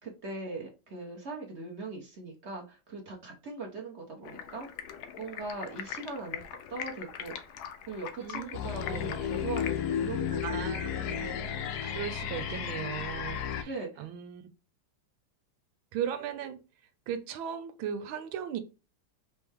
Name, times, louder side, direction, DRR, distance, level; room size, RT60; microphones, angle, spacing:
voice 1, 0.0-4.7 5.2-6.4 6.7-7.5 7.8-10.6 10.9-11.2 13.6-14.1, right 3 dB, 40° right, 1.1 m, -40 dB
Stream, 4.2-9.7, left 9 dB, 90° left, 1.5 m, -42 dB
sound 1, 8.5-13.6, left 8 dB, 65° left, 1.1 m, -33 dB
voice 2, 10.4-11.3 11.8-13.7 14.0-14.4 15.9-16.6 17.1-18.6, right 9 dB, 85° right, 1.5 m, -37 dB
4.3 x 3.1 x 3.4 m
omnidirectional pair, 2.1 m